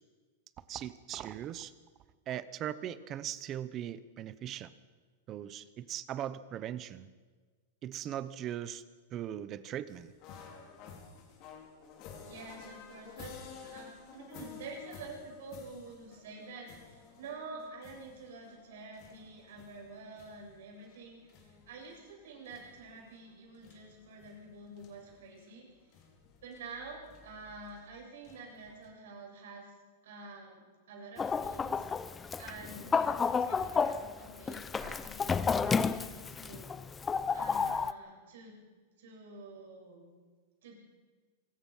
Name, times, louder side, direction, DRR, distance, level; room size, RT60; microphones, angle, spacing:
voice 1, 0.7-1.7 2.3-4.7 5.3-7.1 7.8-8.8 9.1-10.1, right 11 dB, 25° right, 15 dB, 0.8 m, -39 dB
sound 1, 9.9-28.9, left 6 dB, 35° left, 4.3 m, -53 dB
voice 2, 12.2-26.0 26.4-29.7 30.0-36.7 37.3-38.6 39.0-40.1 40.6-40.8, right 3 dB, 70° right, 0 dB, 8.0 m, -48 dB
Chicken rooster, 31.2-37.9, left 5 dB, 10° left, 0.5 m, -31 dB
25.0 x 21.5 x 5.7 m, 1.5 s
supercardioid pair, 170°, 0 cm